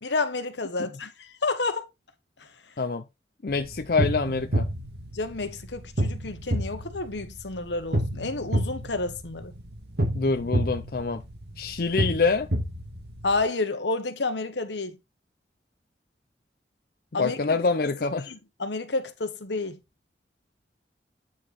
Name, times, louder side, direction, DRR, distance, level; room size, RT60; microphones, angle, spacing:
voice 1, 0.0-1.9 5.1-9.5 13.2-15.0 17.1-17.6 18.3-19.8, left 3 dB, 85° left, 1.3 m, -30 dB
voice 2, 3.4-4.7 10.1-11.2 11.6-12.5 17.1-18.3, left 4 dB, 55° left, 0.5 m, -26 dB
sound 1, 3.5-13.4, right 1 dB, 65° right, 2.1 m, -30 dB
8.9 x 4.5 x 4.2 m
head